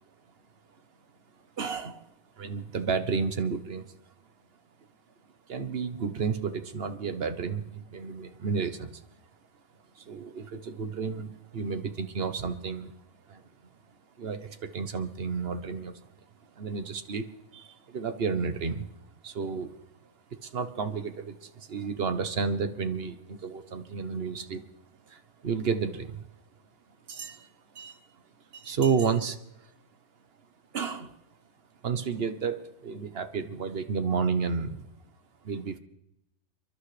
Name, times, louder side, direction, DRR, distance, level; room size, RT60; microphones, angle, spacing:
voice 1, 1.6-2.1 2.4-3.9 5.5-9.0 10.0-12.9 13.3-13.4 14.2-16.0 16.6-17.3 17.5-18.9 19.2-19.8 20.4-24.6 25.1-26.3 27.1-27.5 27.7-28.0 28.5-29.4 30.7-31.2 31.8-34.9 35.4-35.8, right 5 dB, 55° right, 9 dB, 1.2 m, -31 dB
30.0 x 11.5 x 3.3 m, 0.84 s
omnidirectional pair, 1.2 m